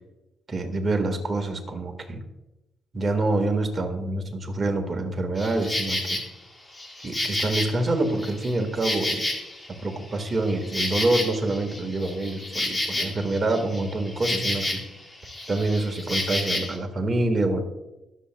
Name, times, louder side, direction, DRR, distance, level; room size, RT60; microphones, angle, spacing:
voice 1, 0.5-2.2 2.9-6.2 7.0-9.3 9.8-14.8 15.5-17.6, right 2 dB, 35° right, 4 dB, 1.6 m, -26 dB
Insect, 5.4-6.2 6.7-9.8 10.1-15.0 15.2-16.8, left 1 dB, 20° left, 1.7 m, -30 dB
22.0 x 7.4 x 2.2 m, 0.97 s
cardioid pair, 90°, 0 cm